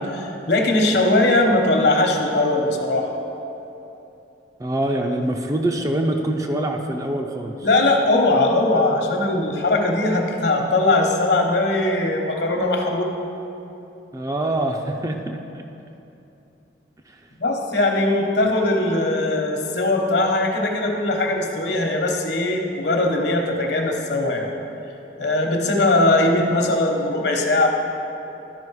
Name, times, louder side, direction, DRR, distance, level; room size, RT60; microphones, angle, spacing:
voice 1, 0.0-3.1 7.6-13.1 17.4-24.5 25.2-27.7, left 2 dB, 65° left, 2 dB, 1.0 m, -20 dB
voice 2, 4.6-7.6 14.1-15.6 17.1-17.2, right 1 dB, 20° right, 3 dB, 0.4 m, -24 dB
12.0 x 5.2 x 4.7 m, 2.9 s
head